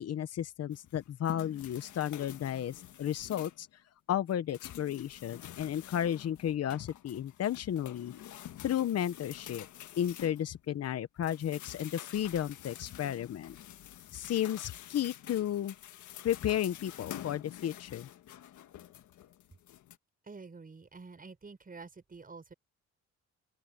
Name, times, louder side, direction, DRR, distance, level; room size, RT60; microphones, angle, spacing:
voice 1, 0.0-3.7 4.1-8.1 8.6-9.7 10.0-13.5 14.1-15.7 16.2-18.1, left 10 dB, 55° left, 1.0 m, -33 dB
sound 1, 0.7-3.7 4.1-10.9 11.2-20.0, left 12 dB, 75° left, 1.6 m, -48 dB
voice 2, 20.2-22.5, right 4 dB, 30° right, 6.3 m, -48 dB
open air
cardioid pair, 90°, 30 cm